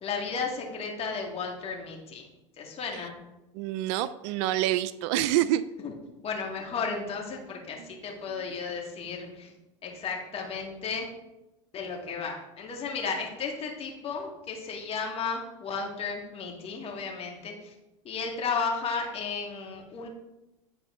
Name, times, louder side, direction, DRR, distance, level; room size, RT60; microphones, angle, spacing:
voice 1, 0.0-2.2 2.6-3.1 5.8-5.9 6.2-9.5 9.8-11.1 11.7-17.7 18.1-20.1, left 5 dB, 35° left, 0 dB, 2.0 m, -34 dB
voice 2, 3.5-5.6 7.8-7.9 8.3-8.5, right 13 dB, 65° right, 15 dB, 0.4 m, -27 dB
10.5 x 4.4 x 3.8 m, 0.96 s
hypercardioid pair, 100°, 17 cm